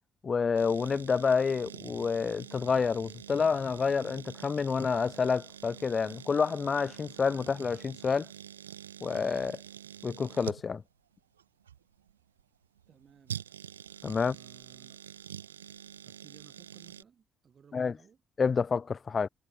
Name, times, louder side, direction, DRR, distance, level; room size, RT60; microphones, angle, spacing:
voice 1, 0.2-8.3 9.0-9.6 10.0-10.8 14.0-14.3 17.7-17.9 18.4-19.3, left 5 dB, 40° left, 0.5 m, -28 dB
sound 1, 0.6-17.0, right 9 dB, 80° right, 0.7 m, -46 dB
voice 2, 12.9-13.4 14.2-15.0 16.0-18.2, right 7 dB, 45° right, 6.5 m, -59 dB
figure-of-eight pair, 40°, 0 cm